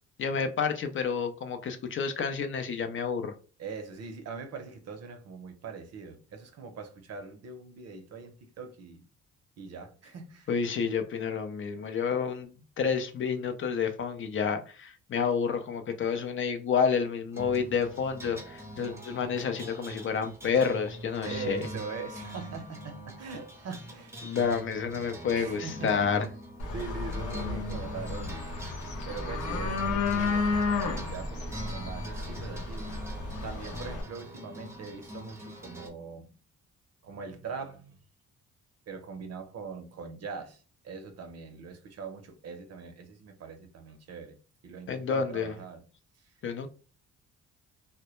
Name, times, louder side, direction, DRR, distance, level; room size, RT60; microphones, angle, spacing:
voice 1, 0.2-3.3 10.5-21.6 24.2-26.3 44.9-45.5 46.4-46.7, left 6 dB, 45° left, 0.4 m, -29 dB
voice 2, 3.6-9.0 9.6-10.5 21.2-24.3 25.3-26.0 26.7-28.5 29.1-30.7 30.9-32.9 33.4-36.3 37.0-38.0 38.9-44.4 44.6-45.8, right 5 dB, 55° right, 0.6 m, -42 dB
sound 1, 17.3-35.9, equal, 10° right, 0.6 m, -43 dB
sound 2, 26.6-34.0, left 3 dB, 75° left, 0.7 m, -32 dB
2.1 x 2.1 x 2.9 m
cardioid pair, 90°, 30 cm